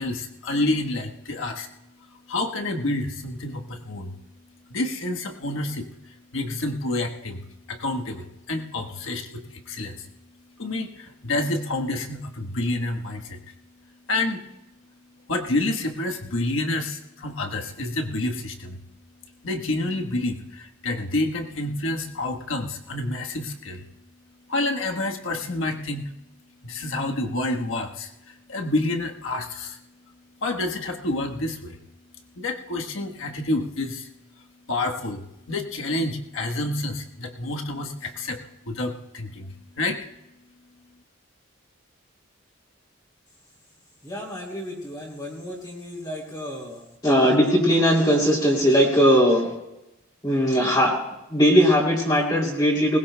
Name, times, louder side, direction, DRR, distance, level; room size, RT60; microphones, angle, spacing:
voice 1, 0.0-1.7 2.3-4.2 4.7-5.9 6.3-10.1 10.6-13.4 14.1-14.4 15.3-18.8 19.4-23.8 24.5-26.1 26.6-29.8 30.4-31.8 32.4-34.1 34.7-40.0, left 2 dB, 80° left, 3 dB, 1.3 m, -28 dB
voice 2, 44.0-46.8 47.0-49.5 50.2-50.9 51.3-53.0, equal, 20° left, -3 dB, 2.7 m, -20 dB
20.0 x 20.0 x 2.2 m, 0.92 s
head